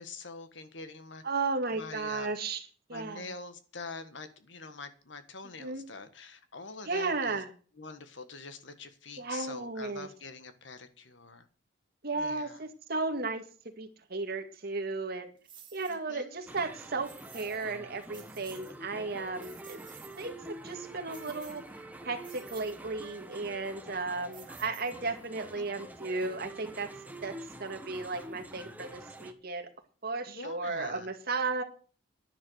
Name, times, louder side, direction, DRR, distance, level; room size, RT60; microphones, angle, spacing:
voice 1, 0.0-1.2 1.7-2.3 2.9-7.4 7.8-11.5 12.2-12.6 15.9-16.4 25.6-25.7 30.3-31.1, left 4 dB, 70° left, 1.6 m, -45 dB
voice 2, 1.2-3.3 5.6-5.8 6.9-7.5 9.2-10.1 12.0-13.4 13.8-15.3 15.7-19.9 20.2-26.9 27.2-27.3 27.6-29.7 30.0-31.6, right 3 dB, 55° right, 2.1 m, -35 dB
sound 1, 15.4-16.0 17.0-17.7 18.0-18.8 19.2-20.3 21.1-21.8 22.2-22.8 24.3-25.2, right 8 dB, 25° right, 2.7 m, -53 dB
sound 2, 16.5-29.3, right 1 dB, 10° right, 1.2 m, -47 dB
10.5 x 10.0 x 6.4 m
head